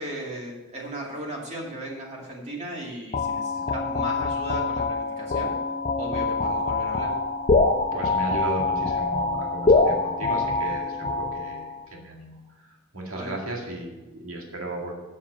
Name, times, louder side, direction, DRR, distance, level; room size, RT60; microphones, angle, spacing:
voice 1, 0.0-5.5 6.0-7.1 13.1-13.4, right 1 dB, 35° right, -2 dB, 2.5 m, -36 dB
sound 1, 3.1-11.8, left 3 dB, 30° left, 0.6 m, -25 dB
voice 2, 7.9-14.9, right 1 dB, 75° right, 0 dB, 2.1 m, -35 dB
7.5 x 7.3 x 6.8 m, 1.1 s
head